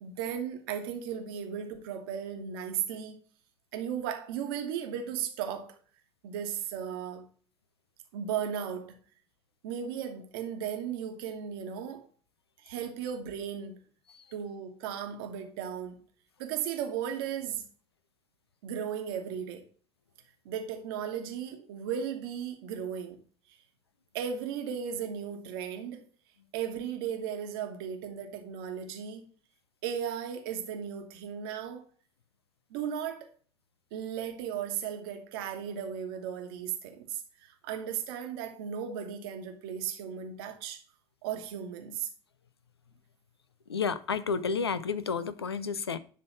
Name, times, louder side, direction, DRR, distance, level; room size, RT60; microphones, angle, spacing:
voice 1, 0.0-3.2 3.7-5.8 6.2-7.2 8.1-9.0 9.6-12.1 12.6-13.8 14.3-16.0 16.4-17.6 18.6-19.6 20.4-23.2 24.1-26.1 26.5-29.3 29.8-31.9 32.7-33.3 33.9-40.8 41.2-42.1, right 8 dB, 65° right, 1.2 m, -36 dB
voice 2, 43.7-46.0, left 5 dB, 85° left, 0.4 m, -31 dB
10.0 x 3.4 x 4.7 m
figure-of-eight pair, 60°, 13 cm